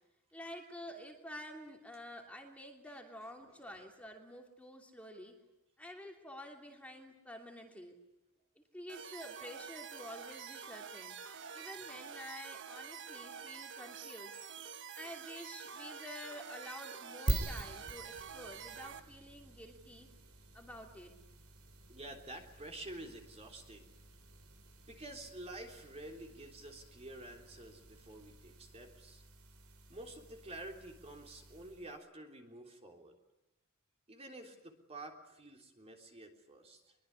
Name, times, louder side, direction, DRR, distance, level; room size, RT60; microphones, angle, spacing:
voice 1, 0.3-5.4 5.8-7.9 8.6-11.1 11.5-14.4 14.9-20.1 20.5-21.1, equal, 5° left, 2 dB, 2.9 m, -49 dB
sound 1, 8.9-19.0, right 7 dB, 60° right, 1.3 m, -48 dB
sound 2, 17.3-32.0, right 1 dB, 80° right, 3.0 m, -45 dB
voice 2, 21.9-23.9 24.8-29.2 29.9-33.2 34.1-37.0, right 1 dB, 30° right, 2 dB, 3.5 m, -49 dB
24.0 x 23.0 x 9.7 m, 0.90 s
head